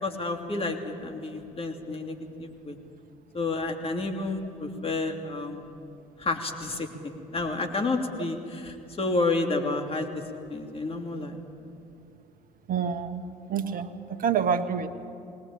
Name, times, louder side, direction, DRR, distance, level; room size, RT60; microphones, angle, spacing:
voice 1, 0.0-2.8 3.3-5.6 6.2-10.2 10.5-11.4, left 3 dB, 35° left, 4 dB, 2.9 m, -30 dB
voice 2, 12.7-13.2 13.5-14.9, right 7 dB, 50° right, 9 dB, 1.5 m, -27 dB
21.0 x 19.5 x 8.7 m, 2.6 s
hypercardioid pair, 60°, 18 cm